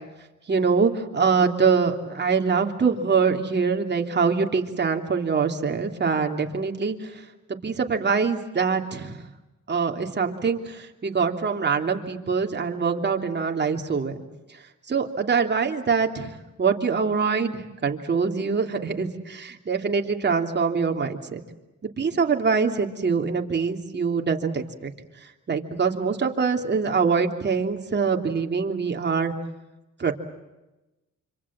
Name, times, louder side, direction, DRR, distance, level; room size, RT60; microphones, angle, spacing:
voice 1, 0.5-7.2 7.6-9.2 9.7-14.2 14.9-21.4 22.0-24.9 25.5-29.3 30.0-30.1, right 5 dB, 35° right, 4 dB, 3.1 m, -24 dB
27.0 x 26.0 x 7.5 m, 1.0 s
cardioid pair, 90°, 30 cm